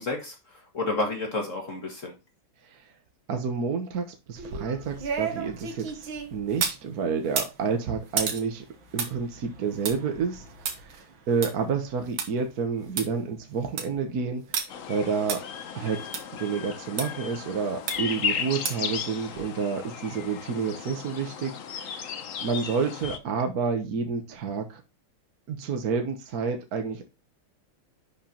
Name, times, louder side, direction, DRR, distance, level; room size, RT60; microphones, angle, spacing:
voice 1, 0.0-2.1, left 2 dB, 40° left, 1 dB, 1.9 m, -31 dB
voice 2, 3.3-8.6 8.9-11.0 11.3-15.4 15.7-16.0 16.4-22.1 22.4-24.8 25.5-27.1, right 5 dB, 55° right, 5 dB, 1.4 m, -29 dB
sound 1, 4.4-6.8 7.2-12.3 12.6-12.7 13.0-13.1 13.5-14.0 14.5-14.6 15.3-15.4 16.1-16.2 17.0-17.1 17.9-18.2 18.6-18.9 19.3-19.4, right 6 dB, 75° right, 2.1 m, -32 dB
sound 2, 14.7-23.2, left 7 dB, 55° left, 0.9 m, -35 dB
11.0 x 5.0 x 2.9 m, 0.26 s
omnidirectional pair, 2.2 m